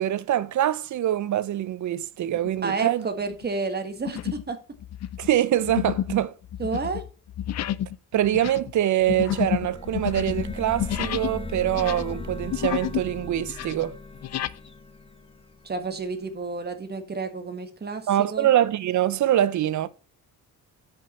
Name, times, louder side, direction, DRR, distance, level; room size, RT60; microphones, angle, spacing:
voice 1, 0.0-3.0 5.2-6.3 8.1-14.0 18.1-19.9, right 12 dB, 60° right, 0.6 m, -24 dB
sound 1, 2.3-2.7 3.2-3.4 4.0-4.5 4.8-11.4 11.7-13.1 13.4-14.6, left 11 dB, 50° left, 0.5 m, -30 dB
voice 2, 2.6-4.6 6.6-7.1 15.6-18.5, right 4 dB, 30° right, 1.6 m, -30 dB
sound 2, 9.3-16.0, left 2 dB, 15° left, 1.1 m, -38 dB
11.0 x 5.3 x 4.2 m
cardioid pair, 145°, 33 cm